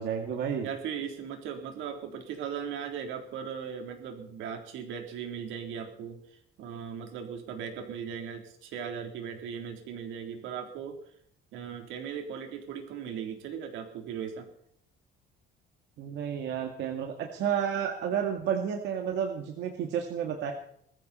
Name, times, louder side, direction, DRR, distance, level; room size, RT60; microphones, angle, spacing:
voice 1, 0.0-0.7 16.0-20.5, right 8 dB, 65° right, 3 dB, 2.0 m, -31 dB
voice 2, 0.6-6.2 6.6-11.0 11.5-14.5, right 7 dB, 85° right, 4 dB, 3.6 m, -38 dB
21.0 x 14.5 x 4.3 m, 0.66 s
cardioid pair, 165°, 20 cm